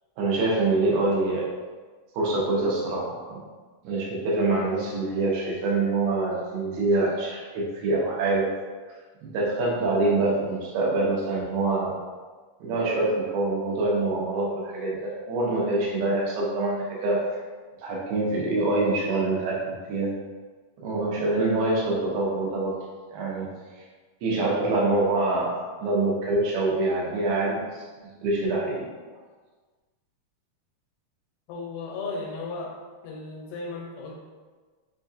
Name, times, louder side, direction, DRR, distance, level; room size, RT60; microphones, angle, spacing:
voice 1, 0.2-1.5 2.1-3.4 3.8-8.5 9.2-12.0 12.6-17.3 17.8-20.2 20.8-22.8 23.1-23.5 24.2-25.6 25.8-27.8 28.2-28.9, right 2 dB, 90° right, -4 dB, 2.8 m, -25 dB
voice 2, 31.5-32.7 33.0-34.2, left 3 dB, 90° left, -2 dB, 2.6 m, -35 dB
6.2 x 2.7 x 2.4 m, 1.4 s
omnidirectional pair, 4.3 m